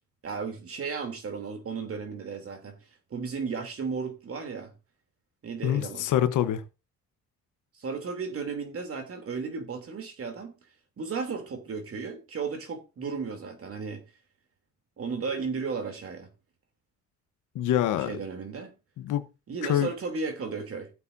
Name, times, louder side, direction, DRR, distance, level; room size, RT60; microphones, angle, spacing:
voice 1, 0.2-2.8 3.1-4.7 5.4-6.1 7.7-10.5 11.0-14.0 15.0-16.3 18.0-18.8 19.5-20.9, right 5 dB, 50° right, 3.1 m, -34 dB
voice 2, 5.6-6.6 17.5-18.1 19.0-19.3 19.6-19.9, left 11 dB, 80° left, 1.1 m, -25 dB
15.5 x 8.4 x 2.7 m
cardioid pair, 90°, 30 cm